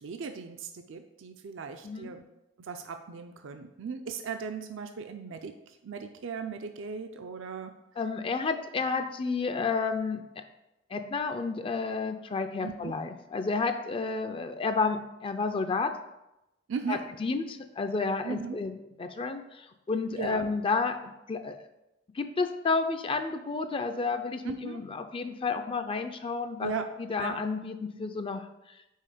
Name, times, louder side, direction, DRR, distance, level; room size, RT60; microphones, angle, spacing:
voice 1, 0.0-2.2 2.7-5.5 5.8-7.7 12.6-12.9 16.7-17.1 18.2-18.6 20.2-20.5 24.5-24.8 26.6-26.9 27.2-27.4, right 5 dB, 70° right, 7 dB, 0.4 m, -37 dB
voice 2, 1.8-2.1 8.0-10.4 10.9-15.9 16.9-21.0 21.3-21.6 22.1-26.7 27.0-28.8, left 4 dB, 25° left, 8 dB, 0.4 m, -31 dB
5.5 x 4.5 x 4.9 m, 0.92 s
head